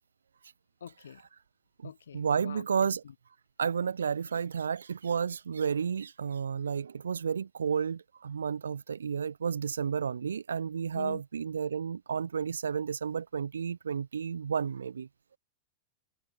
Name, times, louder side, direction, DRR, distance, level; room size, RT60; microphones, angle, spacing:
voice 1, 0.8-1.2 1.8-3.1 10.9-11.2, left 8 dB, 85° left, 3.2 m, -45 dB
voice 2, 1.8-3.0 3.6-15.1, right 6 dB, 85° right, 0.5 m, -32 dB
open air
hypercardioid pair, 100°, 0 cm